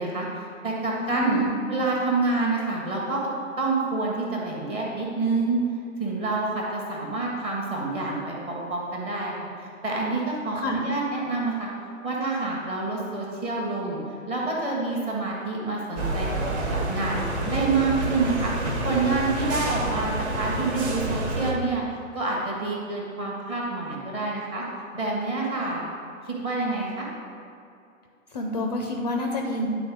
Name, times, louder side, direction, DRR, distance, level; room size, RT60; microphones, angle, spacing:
voice 1, 0.0-1.4 1.7-3.2 3.6-5.6 6.0-9.3 9.8-11.7 12.0-14.0 14.3-16.3 16.7-17.2 17.5-18.5 18.8-21.8 22.1-24.6 24.9-25.8 26.2-27.1, right 3 dB, 15° right, -3 dB, 1.0 m, -27 dB
voice 2, 0.9-1.6 10.6-10.8 28.3-29.7, left 1 dB, 30° left, 2 dB, 0.6 m, -28 dB
sound 1, 16.0-21.5, right 2 dB, 50° right, 1.4 m, -28 dB
9.8 x 4.1 x 5.1 m, 2.5 s
figure-of-eight pair, 130°, 41 cm